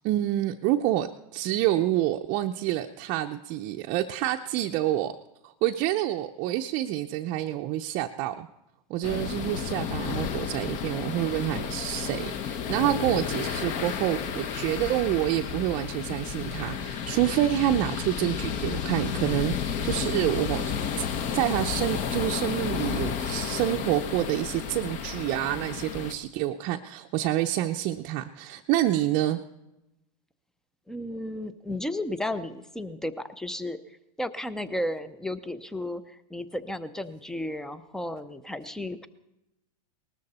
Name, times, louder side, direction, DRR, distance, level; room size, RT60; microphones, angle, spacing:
voice 1, 0.0-5.1 5.6-8.5 8.9-21.1 21.3-29.4, right 13 dB, 40° right, 3 dB, 0.6 m, -28 dB
sound 1, 9.0-26.1, left 7 dB, 40° left, 1.0 m, -32 dB
voice 2, 30.9-39.1, left 1 dB, 5° left, 14 dB, 0.6 m, -34 dB
19.5 x 13.5 x 4.2 m, 0.91 s
hypercardioid pair, 130°, 21 cm